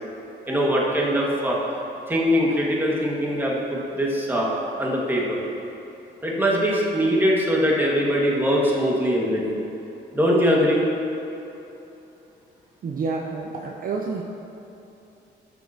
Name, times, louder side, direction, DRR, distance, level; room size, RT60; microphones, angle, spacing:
voice 1, 0.5-1.6 2.1-4.5 4.8-5.4 6.2-9.5 10.1-10.8, equal, 10° right, -4 dB, 1.7 m, -22 dB
voice 2, 12.8-14.2, right 4 dB, 45° right, 0 dB, 0.6 m, -29 dB
12.5 x 6.1 x 2.8 m, 3.0 s
cardioid pair, 90°, 20 cm